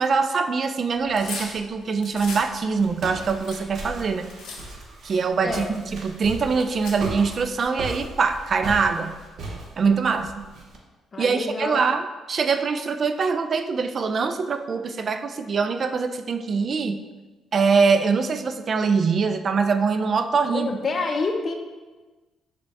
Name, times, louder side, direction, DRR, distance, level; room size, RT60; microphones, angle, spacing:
voice 1, 0.0-4.3 5.0-9.2 9.8-10.5 11.2-17.0 17.5-20.8, right 5 dB, 45° right, 8 dB, 0.3 m, -23 dB
sound 1, 0.9-2.5 2.9-4.6 5.2-5.3 5.5-5.7 6.5-7.4, left 4 dB, 90° left, 0.8 m, -38 dB
Walk footsteps, 2.2-10.8, right 2 dB, 65° right, 0.8 m, -37 dB
voice 2, 11.1-11.8 20.5-21.5, left 3 dB, 40° left, 3 dB, 0.5 m, -27 dB
4.9 x 2.2 x 4.6 m, 1.2 s
cardioid pair, 90°, 0 cm